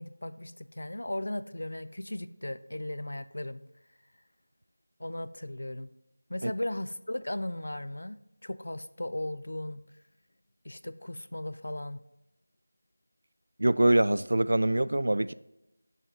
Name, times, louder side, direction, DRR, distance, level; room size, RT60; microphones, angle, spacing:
voice 1, 0.0-3.6 5.0-5.9 6.3-9.8 10.6-12.0, left 1 dB, 85° left, 0.6 m, -37 dB
voice 2, 13.6-15.3, right 1 dB, 65° right, 0.4 m, -24 dB
17.0 x 7.2 x 2.8 m
figure-of-eight pair, 180°, 0 cm